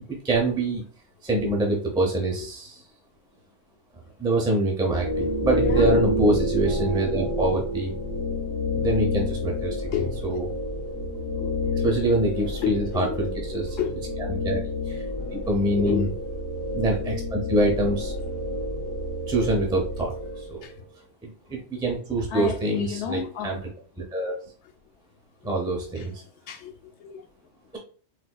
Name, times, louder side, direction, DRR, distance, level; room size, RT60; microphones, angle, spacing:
voice 1, 0.1-0.8 1.2-2.7 4.2-8.0 8.7-10.4 11.8-13.7 14.4-14.6 14.9-15.0 15.3-16.1 16.7-18.1 19.3-20.7 21.2-23.6 24.0-24.4 25.4-26.1, right 2 dB, 5° right, 0.5 m, -25 dB
sound 1, 4.9-20.7, left 1 dB, 60° right, 1.3 m, -28 dB
voice 2, 5.6-6.0 9.9-10.4 11.2-12.4 12.6-13.3 13.6-14.0 15.7-16.3 20.6-20.8 22.3-23.6 25.9-26.1 26.5-27.2, left 8 dB, 80° left, 0.9 m, -32 dB
4.0 x 2.7 x 2.3 m
omnidirectional pair, 1.2 m